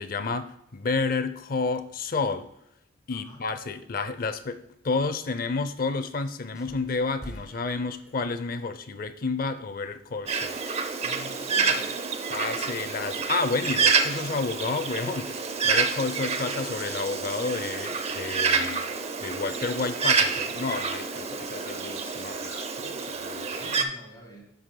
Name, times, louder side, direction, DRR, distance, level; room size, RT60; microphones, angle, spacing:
voice 1, 0.0-2.5 3.1-10.6 12.3-18.9 19.2-23.7, left 4 dB, 50° left, 0.5 m, -30 dB
voice 2, 3.1-3.4 11.0-12.0 23.6-24.6, equal, 20° left, 1.9 m, -47 dB
sound 1, 6.5-8.7, equal, 5° right, 1.4 m, -46 dB
Bird, 10.3-23.8, right 5 dB, 35° right, 0.6 m, -28 dB
10.5 x 7.7 x 2.2 m
head